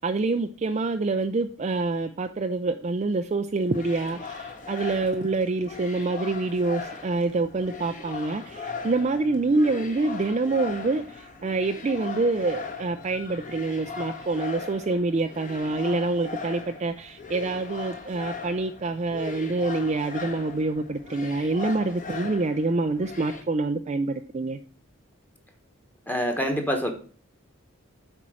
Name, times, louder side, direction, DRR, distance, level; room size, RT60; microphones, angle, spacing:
voice 1, 0.0-24.6, right 3 dB, 30° right, 7 dB, 0.4 m, -26 dB
sound 1, 3.6-23.4, left 4 dB, 35° left, 1.2 m, -39 dB
voice 2, 26.1-26.9, equal, 10° left, 3 dB, 1.2 m, -26 dB
8.1 x 4.4 x 6.1 m, 0.40 s
head